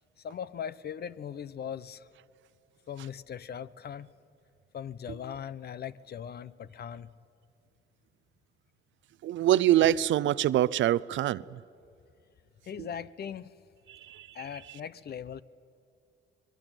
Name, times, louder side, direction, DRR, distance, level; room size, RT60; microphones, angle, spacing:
voice 1, 0.2-2.1 2.9-4.1 4.7-7.1 12.6-13.5 14.3-15.4, left 8 dB, 55° left, 0.9 m, -39 dB
voice 2, 9.2-11.6 13.9-14.3, right 12 dB, 75° right, 0.6 m, -25 dB
24.0 x 21.5 x 9.1 m
cardioid pair, 90°, 20 cm